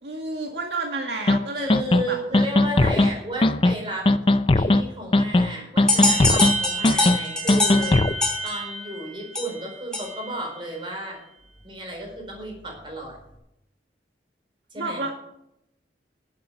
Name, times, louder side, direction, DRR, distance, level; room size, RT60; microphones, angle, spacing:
voice 1, 0.0-2.4 2.9-3.1 14.7-15.1, right 3 dB, 70° right, 1 dB, 2.0 m, -31 dB
sound 1, 1.3-1.4 1.7-2.0 2.3-3.1 3.4-3.7 4.1-4.8 5.1-5.5 5.8-6.5 6.8-7.2 7.5-8.1, left 2 dB, 30° left, 0.5 m, -18 dB
voice 2, 1.5-4.1 4.5-8.0 8.4-11.2 11.6-13.2 14.7-15.0, right 1 dB, 30° right, 1 dB, 4.5 m, -33 dB
sound 2, 5.9-10.4, left 1 dB, 5° left, 3.0 m, -24 dB
11.5 x 8.7 x 7.5 m, 0.80 s
head